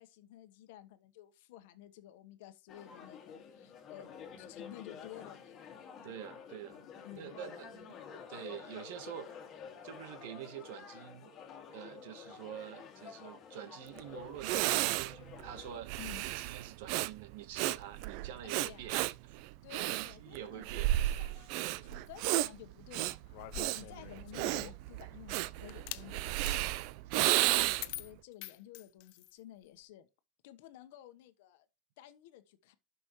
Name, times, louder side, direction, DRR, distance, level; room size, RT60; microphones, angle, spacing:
voice 1, 0.0-4.1 4.4-5.9 7.0-7.3 16.0-16.2 18.4-19.0 19.6-23.4 23.7-26.7 27.2-30.1 30.4-31.7 32.0-32.7, left 12 dB, 80° left, 1.1 m, -53 dB
sound 1, 2.7-15.8, left 7 dB, 30° left, 2.2 m, -50 dB
voice 2, 6.0-6.8 7.1-8.0 8.3-9.4 9.8-11.3 11.7-19.4 19.9-20.9 21.7-22.0 23.8-23.9 27.5-27.7, right 10 dB, 75° right, 1.2 m, -47 dB
Breathing, 14.0-14.1 14.4-28.0, right 16 dB, 60° right, 0.4 m, -33 dB
sound 2, 23.3-24.9 25.7-26.1 26.4-26.6 27.2-27.4 27.8-29.3, left 17 dB, 60° left, 0.6 m, -45 dB
12.5 x 6.1 x 3.1 m
supercardioid pair, 155°, 0 cm